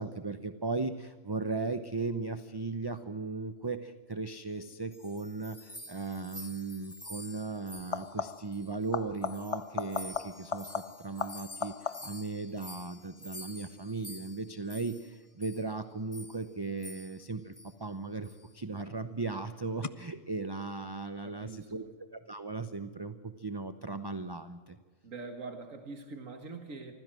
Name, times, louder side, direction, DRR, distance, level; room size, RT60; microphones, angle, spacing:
voice 1, 0.0-17.5 17.8-21.8 22.1-24.8, right 3 dB, 20° right, 10 dB, 0.7 m, -37 dB
sound 1, 4.6-8.9 9.2-15.1 15.4-15.7 16.1-16.4 16.8-17.3 17.5-17.7 18.2-18.5, left 1 dB, 15° left, 1.6 m, -49 dB
sound 2, 6.3-6.6 7.8-8.6 8.9-12.3 17.7-18.3 19.8-19.9, left 5 dB, 35° left, 0.6 m, -38 dB
voice 2, 21.2-21.9 25.0-26.9, right 3 dB, 80° right, 5 dB, 2.1 m, -44 dB
25.0 x 15.5 x 7.7 m, 1.4 s
omnidirectional pair, 1.3 m